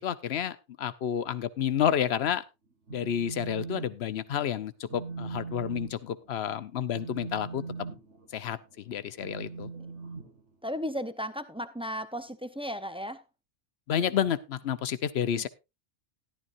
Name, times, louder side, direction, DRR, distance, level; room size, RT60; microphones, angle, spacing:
voice 1, 0.0-2.4 2.9-7.6 8.3-9.7 13.9-15.5, left 9 dB, 65° left, 0.9 m, -30 dB
Telephone, 2.7-3.9 4.2-4.5 4.9-11.0, right 4 dB, 80° right, 2.2 m, -40 dB
voice 2, 10.6-13.2 15.4-15.5, equal, 5° right, 0.5 m, -35 dB
14.0 x 11.5 x 2.5 m
omnidirectional pair, 1.2 m